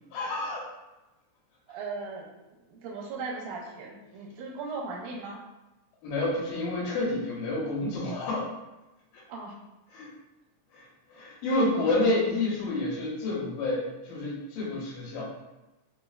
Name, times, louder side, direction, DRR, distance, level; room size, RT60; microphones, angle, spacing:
voice 1, 0.1-0.7 6.0-8.5 9.1-9.2 9.9-10.1 10.7-15.2, left 2 dB, 85° left, -4 dB, 2.3 m, -29 dB
voice 2, 1.7-2.3 2.7-5.4 9.3-9.5, right 4 dB, 85° right, -4 dB, 2.1 m, -37 dB
5.0 x 2.1 x 2.4 m, 1.0 s
omnidirectional pair, 3.6 m